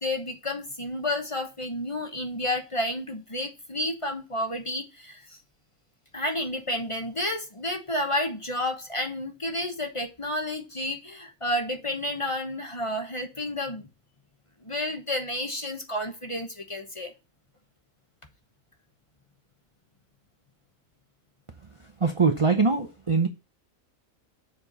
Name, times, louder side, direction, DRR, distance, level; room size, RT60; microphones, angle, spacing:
voice 1, 0.0-5.4 6.1-13.9 14.6-17.1, left 1 dB, 25° left, 1.1 m, -31 dB
voice 2, 22.0-23.3, right 4 dB, 30° right, 0.6 m, -22 dB
7.5 x 4.5 x 5.4 m
omnidirectional pair, 1.5 m